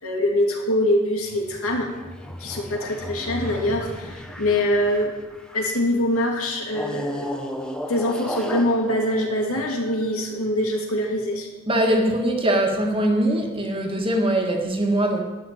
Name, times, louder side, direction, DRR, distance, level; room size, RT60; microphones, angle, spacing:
voice 1, 0.0-1.9 2.4-5.1 5.5-7.4 7.9-11.5, left 1 dB, 85° left, 0 dB, 2.7 m, -24 dB
sound 1, 1.2-5.9 6.7-10.3, equal, 5° left, 0.9 m, -35 dB
voice 2, 11.7-15.2, right 1 dB, 25° right, 2 dB, 1.7 m, -22 dB
12.5 x 6.5 x 9.0 m, 1.2 s
head